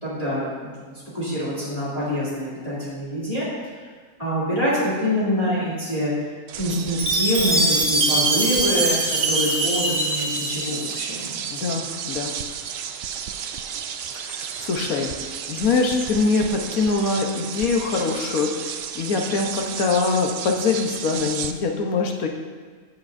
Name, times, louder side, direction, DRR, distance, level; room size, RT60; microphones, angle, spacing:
voice 1, 0.0-3.4 4.2-6.1 6.6-11.4, equal, 25° left, -9 dB, 2.8 m, -25 dB
sound 1, 6.5-21.5, right 8 dB, 65° right, 0.6 m, -33 dB
Chime, 7.0-11.1, right 2 dB, 50° right, 1.7 m, -23 dB
voice 2, 11.5-12.3 14.3-15.1 15.5-22.3, left 4 dB, 75° left, 2 dB, 1.4 m, -23 dB
15.5 x 7.5 x 2.6 m, 1.5 s
omnidirectional pair, 1.5 m